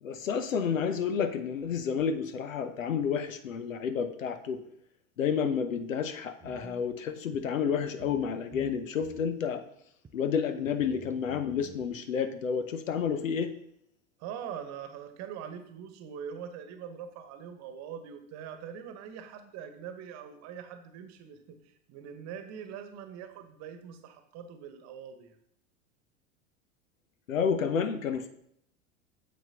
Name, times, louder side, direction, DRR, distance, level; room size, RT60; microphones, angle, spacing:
voice 1, 0.0-4.6 5.2-9.6 10.1-13.5 27.3-28.3, left 7 dB, 75° left, 11 dB, 0.9 m, -30 dB
sound 1, 6.4-6.9 7.3-7.4 8.0-8.3 8.5-9.3 10.0-10.1 10.6-11.9, right 4 dB, 10° right, 0.3 m, -49 dB
voice 2, 14.2-25.4, right 8 dB, 40° right, 8 dB, 1.3 m, -43 dB
8.9 x 7.4 x 2.9 m, 0.70 s
figure-of-eight pair, 85°, 40 cm